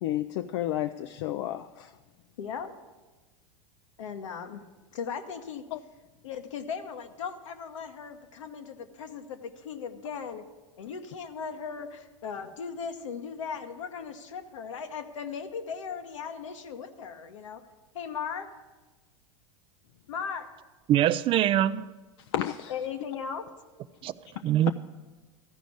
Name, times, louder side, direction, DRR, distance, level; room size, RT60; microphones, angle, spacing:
voice 1, 0.0-1.9 5.7-5.8 22.3-22.7, left 12 dB, 60° left, 0.4 m, -31 dB
voice 2, 2.4-2.7 4.0-4.6 4.9-5.6 6.2-10.4 10.8-17.6 17.9-18.5 20.1-20.5 22.7-23.5, left 6 dB, 75° left, 1.0 m, -37 dB
voice 3, 20.9-21.8 24.0-24.1 24.4-24.7, right 12 dB, 35° right, 0.4 m, -23 dB
14.0 x 5.1 x 8.3 m
hypercardioid pair, 95°, 16 cm